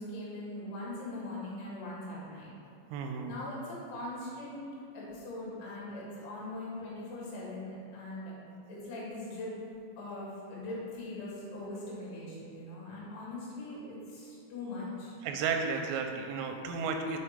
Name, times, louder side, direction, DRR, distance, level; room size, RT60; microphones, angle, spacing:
voice 1, 0.0-2.5 3.3-4.6 4.9-9.5 10.0-15.2, left 2 dB, 70° left, -6 dB, 4.0 m, -41 dB
voice 2, 2.9-3.3 15.2-17.2, right 5 dB, 85° right, 4 dB, 3.2 m, -33 dB
7.8 x 4.8 x 5.0 m, 2.4 s
omnidirectional pair, 5.8 m